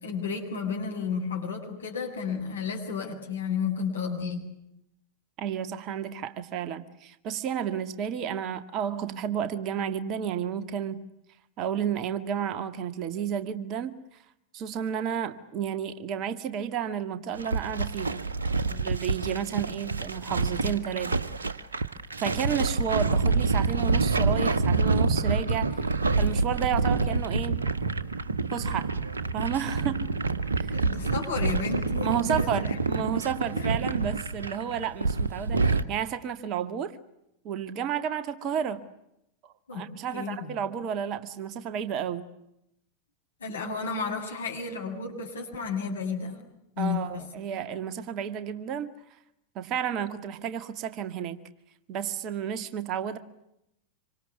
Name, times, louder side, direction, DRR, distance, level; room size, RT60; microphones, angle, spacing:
voice 1, 0.0-4.4 30.7-32.8 33.5-33.7 39.7-39.9 40.1-40.4 43.4-46.4 46.8-47.2, left 5 dB, 70° left, 7.6 m, -32 dB
voice 2, 5.4-11.1 11.6-14.0 14.5-18.3 18.7-21.2 22.2-25.8 26.2-27.6 28.5-28.9 29.3-30.1 30.6-30.8 32.0-37.0 37.4-38.9 39.7-42.3 46.8-48.9 49.6-51.4 51.9-53.2, right 8 dB, 35° right, 2.0 m, -31 dB
sound 1, 17.3-35.8, right 3 dB, 70° right, 1.6 m, -27 dB
27.0 x 25.5 x 8.4 m
figure-of-eight pair, 90°, 0 cm